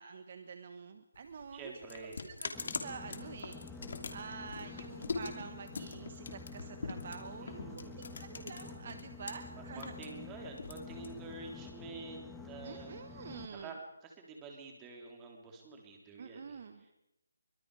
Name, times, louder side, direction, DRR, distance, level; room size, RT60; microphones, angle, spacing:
voice 1, 0.0-1.7 2.2-3.6 4.1-9.9 12.6-13.8 16.2-16.9, right 5 dB, 40° right, 8 dB, 1.4 m, -47 dB
sound 1, 1.1-9.3 9.6-11.6, left 4 dB, 55° left, 2.8 m, -42 dB
voice 2, 1.5-2.2 7.4-8.2 9.5-16.9, right 3 dB, 10° right, 1 dB, 3.6 m, -49 dB
Boat Water vehicle, 2.5-13.5, left 4 dB, 5° left, 1.5 m, -49 dB
25.0 x 24.0 x 5.0 m, 0.87 s
hypercardioid pair, 170°, 0 cm